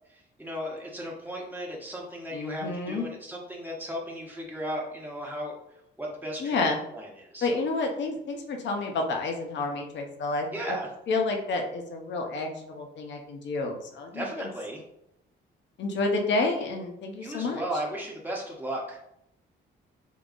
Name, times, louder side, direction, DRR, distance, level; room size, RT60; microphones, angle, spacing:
voice 1, 0.4-5.5 6.0-6.6 6.9-7.6 10.5-10.9 14.1-14.8 17.2-19.0, equal, 10° right, -2 dB, 1.0 m, -35 dB
voice 2, 2.3-3.1 6.4-6.8 7.4-10.8 11.1-14.5 15.8-17.6, left 3 dB, 65° left, 3 dB, 0.7 m, -30 dB
3.7 x 2.7 x 2.5 m, 0.78 s
cardioid pair, 90°, 20 cm